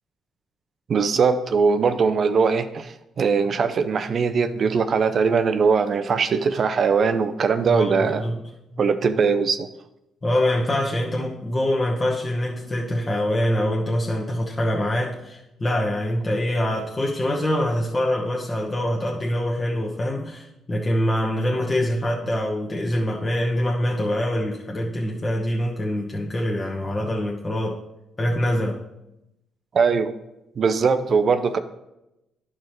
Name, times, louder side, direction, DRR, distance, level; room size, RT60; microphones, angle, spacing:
voice 1, 0.9-8.2 8.8-9.7 29.7-30.1 30.6-31.6, right 5 dB, 50° right, 10 dB, 0.5 m, -21 dB
voice 2, 7.7-8.4 8.7-8.8 10.2-27.8 28.2-28.8, left 1 dB, 25° left, -2 dB, 1.0 m, -24 dB
11.5 x 4.8 x 3.1 m, 0.90 s
cardioid pair, 90°, 0 cm